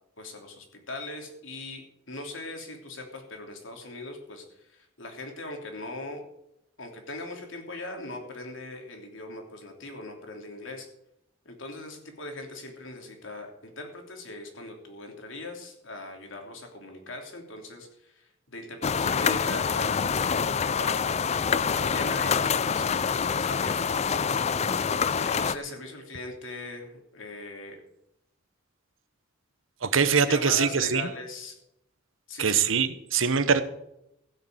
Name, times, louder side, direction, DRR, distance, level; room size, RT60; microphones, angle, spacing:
voice 1, 0.2-6.2 6.8-10.9 11.4-21.2 21.7-22.8 23.1-24.3 25.1-27.8 30.3-31.6 32.3-32.7, left 2 dB, 80° left, 3 dB, 3.1 m, -40 dB
sound 1, 18.8-25.5, left 6 dB, 35° left, 0.4 m, -26 dB
voice 2, 29.8-31.1 32.4-33.6, right 6 dB, 90° right, 12 dB, 1.1 m, -23 dB
15.5 x 6.6 x 7.9 m, 0.82 s
head